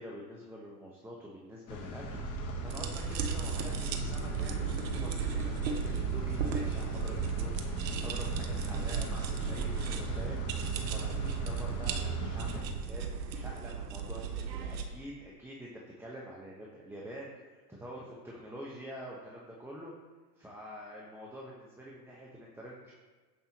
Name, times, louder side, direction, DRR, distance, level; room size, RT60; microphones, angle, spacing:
voice 1, 0.0-15.7 16.0-19.9 20.4-22.9, equal, 5° right, -4 dB, 1.0 m, -47 dB
sound 1, 1.7-12.6, left 5 dB, 35° left, 1.3 m, -42 dB
sound 2, 2.0-12.8, right 7 dB, 40° right, 0.9 m, -37 dB
sound 3, 2.7-14.8, right 6 dB, 90° right, 1.0 m, -37 dB
15.0 x 5.6 x 3.0 m, 1.4 s
supercardioid pair, 115°, 49 cm